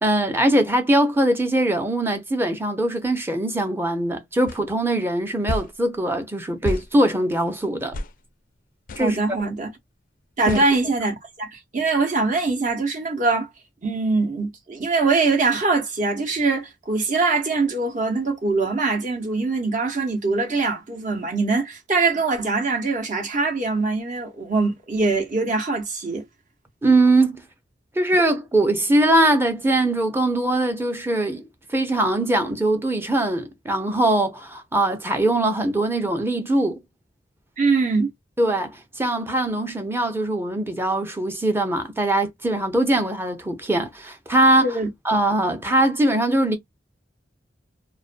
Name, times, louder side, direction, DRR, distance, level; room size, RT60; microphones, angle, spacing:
voice 1, 0.0-8.0 9.0-9.4 10.5-10.6 26.8-27.4 28.0-36.8 38.4-44.8 45.0-46.6, right 1 dB, 15° right, 0.5 m, -21 dB
sound 1, 4.5-4.6 5.5-5.7 6.6-6.9 7.9-8.1 8.9-9.1 10.5-10.7, left 3 dB, 50° left, 0.4 m, -29 dB
voice 2, 9.0-9.7 10.4-13.5 13.8-26.2 37.6-38.1 44.6-44.9, right 3 dB, 45° right, 0.8 m, -23 dB
2.4 x 2.2 x 2.4 m
head